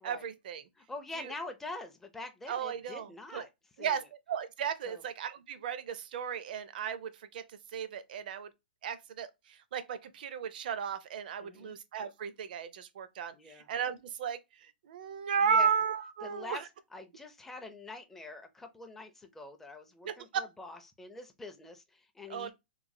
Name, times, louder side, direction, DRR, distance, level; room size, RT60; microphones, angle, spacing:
voice 1, 0.0-0.6 1.2-1.3 2.5-3.4 3.8-4.0 4.3-7.4 7.7-8.5 8.8-16.6 20.0-20.4 22.3-22.5, right 7 dB, 60° right, 0.5 m, -34 dB
voice 2, 0.8-3.5 3.8-4.0 4.9-5.0 11.4-11.8 13.3-13.7 15.4-15.7 16.2-16.6 16.9-22.5, left 2 dB, 5° left, 0.4 m, -45 dB
3.1 x 2.2 x 2.6 m
hypercardioid pair, 145°, 5 cm